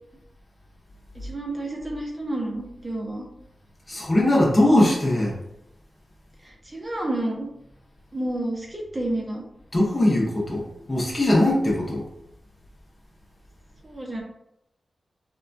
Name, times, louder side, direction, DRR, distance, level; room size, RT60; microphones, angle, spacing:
voice 1, 1.1-3.3 6.4-7.5 8.1-9.4 13.8-14.2, right 1 dB, 20° right, -1 dB, 0.6 m, -30 dB
voice 2, 3.9-5.4 9.7-12.1, left 1 dB, 25° left, -2 dB, 0.7 m, -20 dB
3.5 x 2.2 x 2.5 m, 0.84 s
wide cardioid pair, 150°, 0 cm